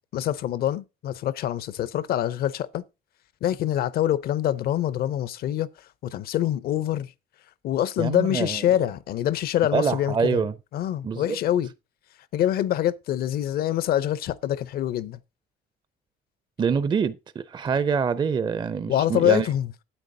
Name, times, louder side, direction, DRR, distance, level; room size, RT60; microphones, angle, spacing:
voice 1, 0.1-2.8 3.4-5.7 6.0-7.1 7.6-10.4 10.7-11.7 12.3-15.2 18.9-19.7, left 11 dB, 65° left, 0.7 m, -25 dB
voice 2, 8.0-8.6 9.7-10.5 11.0-11.4 16.6-19.5, right 6 dB, 25° right, 0.5 m, -25 dB
9.0 x 8.3 x 3.8 m
cardioid pair, 110°, 17 cm